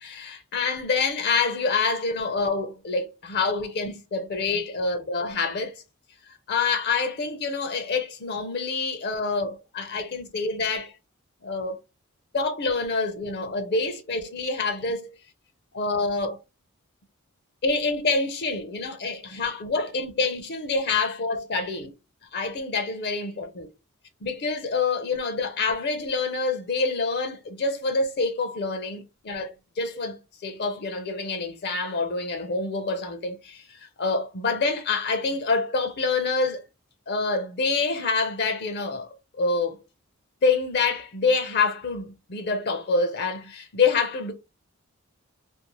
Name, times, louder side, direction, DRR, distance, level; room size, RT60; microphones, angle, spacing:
voice 1, 0.0-5.8 6.3-10.9 11.4-11.8 12.3-15.1 15.7-16.4 17.6-21.9 22.3-23.7 24.2-36.6 37.1-39.1 39.4-39.8 40.4-44.3, left 4 dB, 50° left, 0.5 m, -27 dB
2.6 x 2.1 x 2.9 m
head